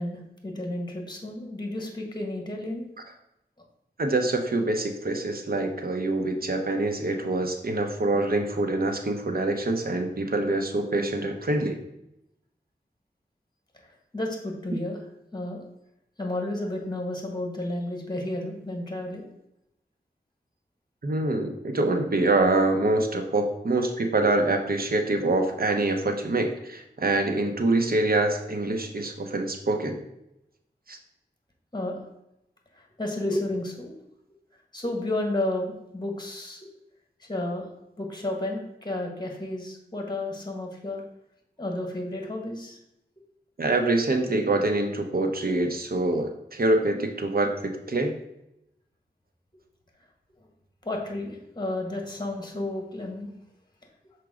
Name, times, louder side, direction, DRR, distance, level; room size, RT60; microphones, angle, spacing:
voice 1, 0.0-2.8 13.8-15.0 15.3-15.6 16.2-19.3 31.7-32.0 32.7-33.9 34.7-36.6 37.2-37.7 38.0-41.0 41.6-42.8 50.8-53.3, left 1 dB, 25° left, 2 dB, 1.6 m, -32 dB
voice 2, 4.0-11.8 21.0-30.0 30.9-31.0 43.6-48.1, right 2 dB, 60° right, 4 dB, 0.9 m, -25 dB
6.0 x 4.5 x 3.7 m, 0.84 s
wide cardioid pair, 55°, 17 cm